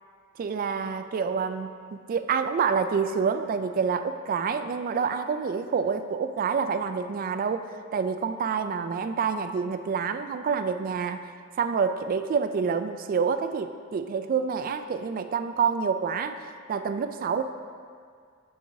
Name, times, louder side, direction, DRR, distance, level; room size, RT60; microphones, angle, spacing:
voice 1, 0.4-11.2 11.6-16.4 16.7-17.4, right 6 dB, 40° right, 9 dB, 0.3 m, -27 dB
12.0 x 4.6 x 2.7 m, 2.1 s
head